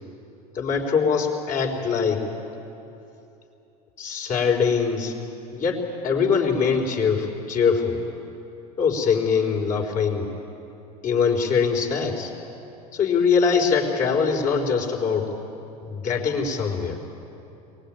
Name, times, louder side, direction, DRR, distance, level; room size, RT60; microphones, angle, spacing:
voice 1, 0.5-2.3 4.0-5.1 5.5-8.0 8.8-10.3 11.0-12.3 12.9-15.3 15.8-17.0, left 5 dB, 45° left, 1 dB, 4.1 m, -23 dB
23.0 x 20.0 x 9.0 m, 2.9 s
hypercardioid pair, 95°, 20 cm